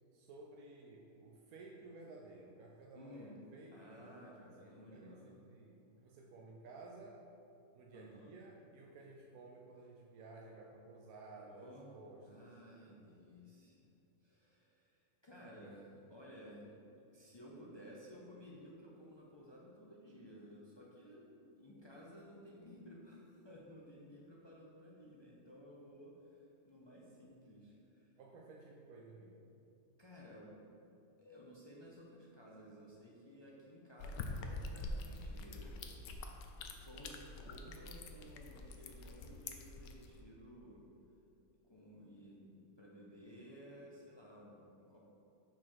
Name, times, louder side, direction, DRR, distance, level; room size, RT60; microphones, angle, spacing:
voice 1, 0.1-4.3 4.6-7.2 7.7-13.2 15.5-15.8 28.2-29.5, right 3 dB, 85° right, -1 dB, 1.1 m, -55 dB
voice 2, 2.9-3.3 3.7-5.3 7.9-8.3 11.4-11.9 12.2-13.9 14.2-16.7 17.1-28.1 30.0-30.5 31.2-35.7 36.8-40.9 41.7-45.0, equal, 35° left, -4 dB, 0.4 m, -56 dB
sound 1, 34.0-40.2, left 2 dB, 90° left, 1.1 m, -46 dB
4.9 x 4.4 x 5.6 m, 2.7 s
omnidirectional pair, 1.5 m